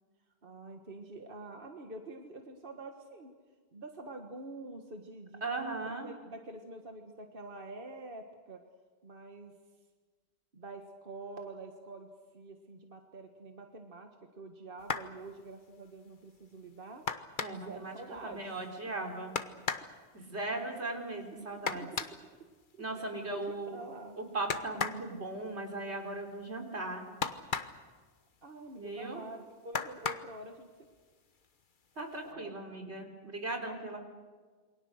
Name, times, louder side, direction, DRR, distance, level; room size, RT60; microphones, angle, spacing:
voice 1, 0.4-3.3 3.7-8.6 9.0-9.5 10.5-17.0 17.5-18.4 20.2-20.3 21.5-22.1 22.7-24.2 28.4-30.7 32.2-32.5, right 2 dB, 55° right, 4 dB, 1.8 m, -47 dB
voice 2, 5.4-6.1 17.4-17.9 18.2-19.4 20.1-21.9 22.8-23.8 24.2-27.0 28.7-29.2 32.0-34.0, right 2 dB, 85° right, 3 dB, 4.0 m, -38 dB
sound 1, 14.8-15.2 17.1-17.8 19.4-19.9 21.7-22.2 24.5-25.1 27.2-27.9 29.7-30.3 31.4-31.5 32.0-32.2, left 5 dB, 50° left, 1.2 m, -35 dB
28.0 x 24.0 x 6.5 m, 1.4 s
omnidirectional pair, 1.1 m